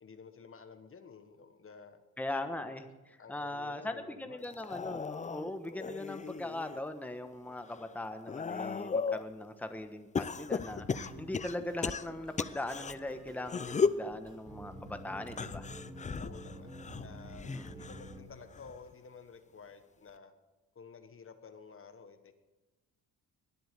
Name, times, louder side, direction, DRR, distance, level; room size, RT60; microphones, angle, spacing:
voice 1, 0.0-2.0 2.6-2.8 3.2-4.6 16.2-20.3 20.7-22.3, left 5 dB, 35° left, 9 dB, 1.2 m, -52 dB
voice 2, 2.2-2.8 3.3-15.7 17.5-17.8, left 1 dB, 5° left, 7 dB, 1.2 m, -40 dB
sound 1, 4.5-6.8 7.3-9.3 10.2-12.9 13.4-14.1 15.3-18.2 18.5-18.9 20.1-20.2, left 5 dB, 20° left, 0.5 m, -36 dB
sound 2, 10.7-18.3, right 1 dB, 15° right, 3.3 m, -49 dB
21.0 x 7.9 x 6.7 m, 1.1 s
cardioid pair, 85°, 35 cm